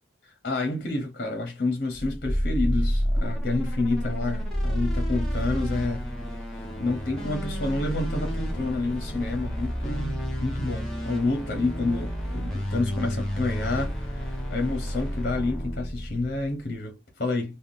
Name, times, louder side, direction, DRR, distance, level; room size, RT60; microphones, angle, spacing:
voice 1, 0.2-6.1 6.8-17.6, left 2 dB, 50° left, 0.8 m, -29 dB
sound 1, 1.9-16.5, equal, 5° left, 0.9 m, -30 dB
3.5 x 2.2 x 2.5 m
head